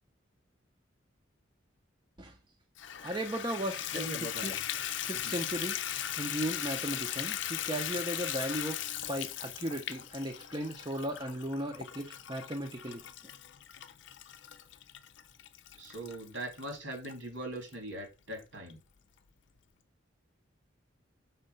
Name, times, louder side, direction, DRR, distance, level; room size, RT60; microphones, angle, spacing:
Water tap faucet / Bathtub (filling or washing), 2.8-17.1 17.7-17.8 18.3-18.4 18.7-18.8, left 11 dB, 65° left, 0.5 m, -38 dB
voice 1, 3.0-13.1, right 1 dB, 25° right, 0.7 m, -37 dB
voice 2, 3.9-4.5 15.8-18.8, right 1 dB, 75° right, 2.7 m, -40 dB
5.7 x 4.2 x 5.4 m
head